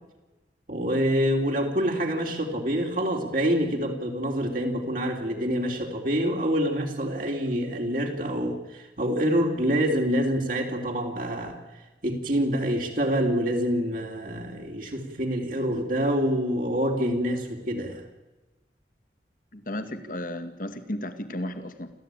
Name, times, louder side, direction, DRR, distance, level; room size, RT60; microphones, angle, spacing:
voice 1, 0.7-11.6 12.0-18.1, equal, 50° right, 1 dB, 3.1 m, -26 dB
voice 2, 19.5-21.9, left 1 dB, 50° left, 9 dB, 2.1 m, -34 dB
27.5 x 15.0 x 9.1 m, 1.1 s
head